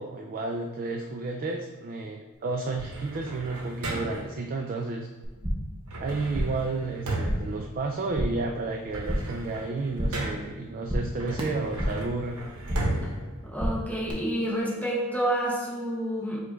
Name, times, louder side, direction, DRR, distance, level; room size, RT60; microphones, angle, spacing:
voice 1, 0.0-5.1 6.0-12.4, right 3 dB, 40° right, 2 dB, 0.3 m, -32 dB
sound 1, 2.8-4.4 5.9-8.3 8.7-10.6 11.2-14.2, right 1 dB, 75° right, 0.8 m, -35 dB
sound 2, 5.2-5.8 6.1-6.7 7.0-7.6 7.9-8.5 8.8-9.4 9.7-10.3 10.6-12.1 12.4-13.0 13.3-14.1, equal, 20° right, 0.8 m, -31 dB
voice 2, 13.5-16.4, right 1 dB, 5° left, -5 dB, 0.9 m, -28 dB
5.0 x 2.4 x 4.5 m, 1.4 s
head